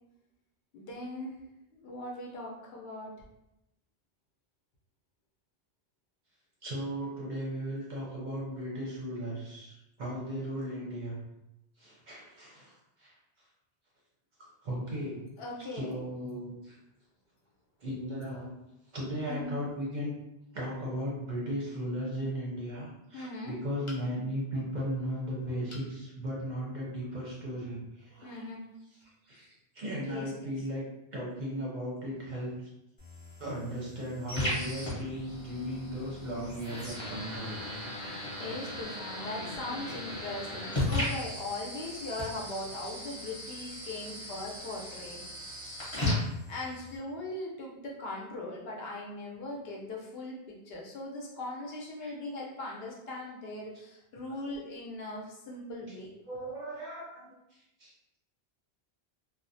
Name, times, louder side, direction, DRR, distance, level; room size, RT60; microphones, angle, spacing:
voice 1, 0.7-1.3 1.7-3.1 15.4-16.0 19.3-19.6 23.1-23.6 28.2-28.6 30.0-30.5 38.4-45.2 46.5-56.1, left 2 dB, 70° left, -2 dB, 0.8 m, -40 dB
voice 2, 6.6-11.2 11.8-12.7 13.0-13.1 14.6-15.3 15.7-16.7 17.8-18.5 18.9-20.1 20.5-28.4 29.3-30.8 31.1-32.5 33.4-37.6 52.0-52.1 56.3-57.3 57.8-57.9, equal, 55° right, -4 dB, 0.6 m, -36 dB
sound 1, 23.8-24.4 25.7-26.0 26.5-26.6 27.0-27.1, left 2 dB, 45° left, 0.4 m, -49 dB
sound 2, 33.0-47.0, left 1 dB, 30° left, 0.8 m, -37 dB
2.4 x 2.0 x 2.6 m, 0.88 s
omnidirectional pair, 1.1 m